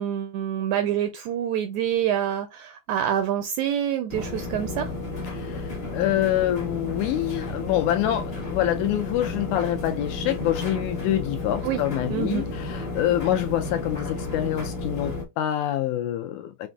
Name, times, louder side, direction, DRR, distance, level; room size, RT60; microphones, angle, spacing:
voice 1, 0.0-4.9 11.6-11.8 12.1-12.4, right 10 dB, 80° right, 1.7 m, -26 dB
sound 1, 4.1-15.2, left 2 dB, 60° left, 0.6 m, -32 dB
voice 2, 5.3-16.7, left 12 dB, 80° left, 1.8 m, -26 dB
5.9 x 2.5 x 2.2 m
omnidirectional pair, 3.8 m